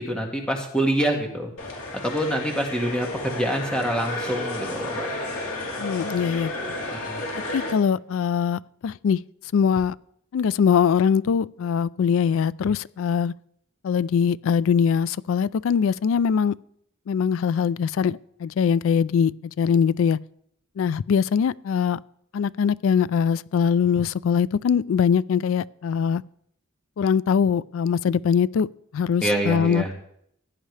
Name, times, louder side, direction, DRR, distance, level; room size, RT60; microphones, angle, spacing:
voice 1, 0.0-1.5 2.0-5.1 6.9-7.2 29.2-29.9, right 1 dB, 5° left, 1.8 m, -26 dB
sound 1, 1.6-7.7, left 1 dB, 85° left, 2.9 m, -32 dB
voice 2, 5.8-6.5 7.5-9.2 9.5-10.0 10.3-13.3 13.8-16.5 17.1-20.2 20.8-22.0 22.3-26.2 27.0-28.7 28.9-29.9, left 7 dB, 65° left, 0.3 m, -22 dB
15.5 x 10.0 x 3.3 m
head